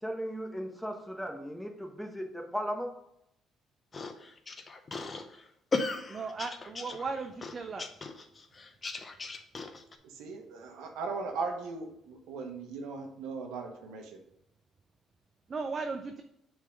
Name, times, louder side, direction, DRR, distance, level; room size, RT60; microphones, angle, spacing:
voice 1, 0.0-2.9, equal, 5° left, 3 dB, 1.1 m, -36 dB
sound 1, 3.9-10.0, left 3 dB, 30° left, 0.8 m, -37 dB
voice 2, 6.1-7.9 15.5-16.2, right 4 dB, 35° right, 6 dB, 0.5 m, -36 dB
voice 3, 10.0-14.2, right 4 dB, 85° right, 4 dB, 1.2 m, -38 dB
6.3 x 3.9 x 5.1 m, 0.78 s
cardioid pair, 100°, 0 cm